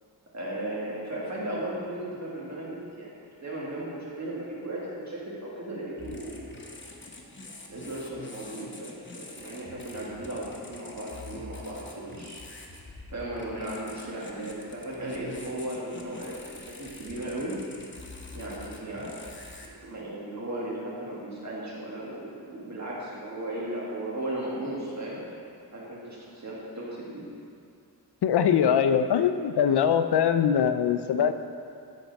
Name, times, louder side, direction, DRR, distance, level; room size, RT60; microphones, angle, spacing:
voice 1, 0.3-3.1 3.4-6.5 7.7-12.5 13.1-17.6 18.3-19.2 19.8-25.2 25.7-27.2, right 1 dB, 45° right, -6 dB, 2.0 m, -36 dB
sound 1, 6.0-19.7, left 2 dB, 30° left, 0.9 m, -45 dB
voice 2, 28.2-31.3, left 8 dB, 80° left, 9 dB, 0.5 m, -22 dB
13.0 x 4.5 x 4.1 m, 2.5 s
wide cardioid pair, 110°, 40 cm